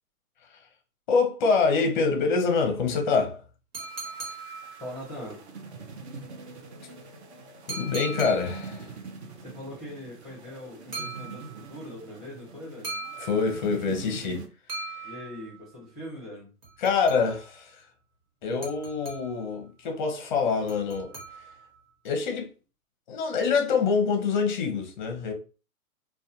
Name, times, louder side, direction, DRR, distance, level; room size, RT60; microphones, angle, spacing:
voice 1, 1.1-3.4 7.7-8.9 13.2-14.4 14.9-15.1 16.8-17.8 18.4-21.1 22.0-22.5 23.1-25.3, left 5 dB, 35° left, 0.6 m, -25 dB
sound 1, 3.7-5.2 7.7-8.8 10.9-11.8 12.8-13.9 14.7-15.7 16.6-17.6 18.6-19.5 20.7-21.8, right 3 dB, 80° right, 1.3 m, -40 dB
sound 2, 3.8-14.5, right 4 dB, 45° right, 0.5 m, -44 dB
voice 2, 4.8-5.4 9.4-12.9 15.0-16.5, left 1 dB, ahead, 0.8 m, -41 dB
2.4 x 2.2 x 2.7 m
hypercardioid pair, 150°, 46 cm